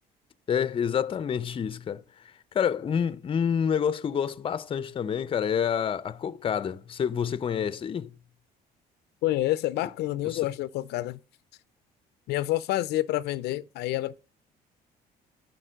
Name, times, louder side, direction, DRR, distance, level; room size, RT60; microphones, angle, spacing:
voice 1, 0.5-8.1 10.2-10.4, left 8 dB, 30° left, 0.5 m, -28 dB
voice 2, 9.2-11.2 12.3-14.2, left 15 dB, 80° left, 0.5 m, -28 dB
10.0 x 4.3 x 6.3 m
cardioid pair, 110°, 17 cm